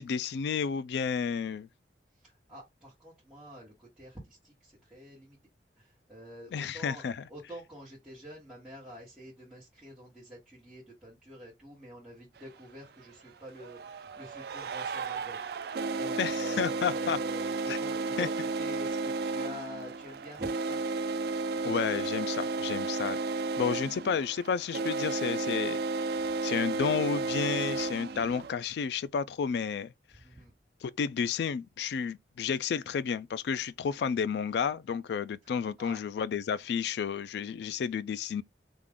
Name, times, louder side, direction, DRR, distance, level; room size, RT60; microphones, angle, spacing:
voice 1, 0.0-1.7 6.5-7.2 16.2-17.2 17.7-17.8 18.2-18.3 21.6-23.2 23.6-25.8 26.4-29.9 30.8-38.4, left 6 dB, 70° left, 0.3 m, -31 dB
voice 2, 2.1-5.4 5.8-7.0 7.3-20.8 30.2-30.5 35.8-36.0, equal, 5° right, 1.2 m, -47 dB
sound 1, 12.4-12.5 13.5-28.5, right 3 dB, 55° right, 0.3 m, -33 dB
3.6 x 2.4 x 3.4 m
head